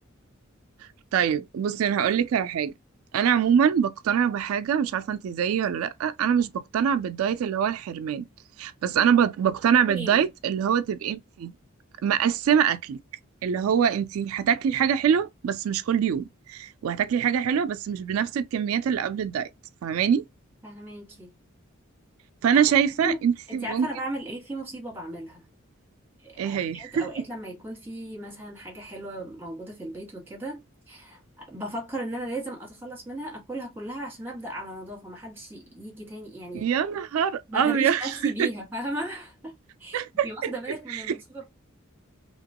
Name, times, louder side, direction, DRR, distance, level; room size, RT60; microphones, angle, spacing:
voice 1, 1.1-2.7 3.1-8.3 8.6-11.5 12.0-13.0 13.4-19.5 19.8-20.2 22.4-23.9 26.4-27.0 36.5-38.5 39.9-40.5 40.9-41.2, right 8 dB, 85° right, 0.3 m, -24 dB
voice 2, 9.9-10.3 20.6-21.3 22.5-22.6 23.0-23.2 23.5-25.4 26.2-30.6 30.9-36.7 37.5-39.5 39.8-41.5, right 1 dB, 10° right, 1.7 m, -36 dB
2.9 x 2.9 x 2.8 m
head